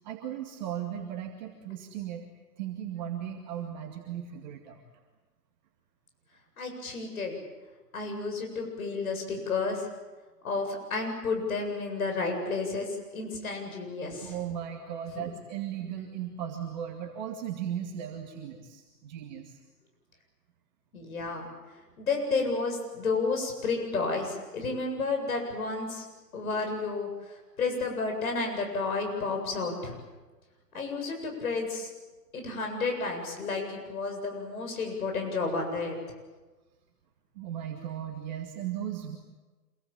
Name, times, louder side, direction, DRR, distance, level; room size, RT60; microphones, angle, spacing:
voice 1, 0.0-2.3 2.6-4.8 14.2-19.6 37.4-39.2, right 9 dB, 25° right, 1 dB, 2.2 m, -37 dB
voice 2, 6.6-7.4 7.9-9.9 10.4-12.9 13.1-14.3 15.1-15.2 20.9-21.5 22.0-26.1 26.3-30.0 30.7-31.9 32.3-35.9, left 4 dB, 60° left, 3 dB, 7.9 m, -31 dB
27.0 x 23.5 x 8.8 m, 1.2 s
hypercardioid pair, 150°, 49 cm